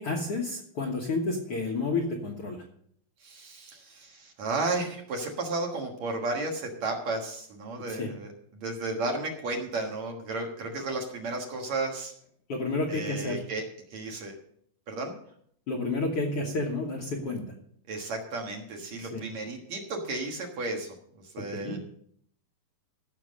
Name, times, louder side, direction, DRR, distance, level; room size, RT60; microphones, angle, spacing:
voice 1, 0.0-2.6 7.9-8.1 12.5-13.4 15.7-17.5 19.0-19.2 21.5-21.8, left 3 dB, 55° left, 0 dB, 1.7 m, -30 dB
voice 2, 3.2-12.1 12.9-13.6 13.9-14.4 14.9-15.1 17.9-21.8, right 2 dB, 55° right, 2 dB, 2.4 m, -33 dB
15.5 x 6.4 x 6.4 m, 0.66 s
omnidirectional pair, 4.2 m